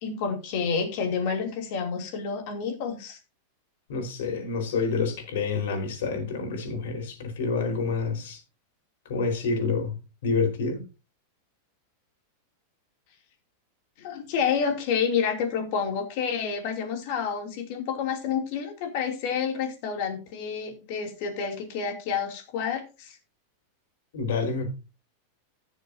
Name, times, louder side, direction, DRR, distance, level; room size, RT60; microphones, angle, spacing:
voice 1, 0.0-3.2 14.0-23.2, left 6 dB, 45° left, 2.8 m, -29 dB
voice 2, 3.9-8.4 9.1-9.9 10.2-10.8 24.1-24.7, left 4 dB, 70° left, 4.6 m, -28 dB
16.5 x 7.2 x 2.8 m
supercardioid pair, 175°, 0 cm